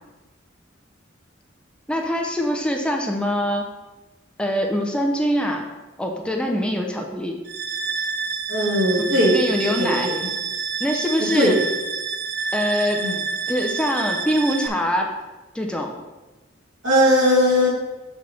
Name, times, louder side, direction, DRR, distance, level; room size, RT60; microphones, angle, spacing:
voice 1, 1.9-3.7 4.4-5.7 6.0-7.4 9.3-10.1 10.8-11.6 12.5-13.1 13.5-15.1 15.5-16.0, equal, 5° left, 2 dB, 0.6 m, -23 dB
sound 1, 7.5-14.7, right 5 dB, 55° right, 0.6 m, -28 dB
voice 2, 8.5-10.2 11.3-11.5 13.0-13.1 16.8-17.7, equal, 80° right, -6 dB, 2.7 m, -19 dB
6.1 x 4.2 x 6.2 m, 1.1 s
head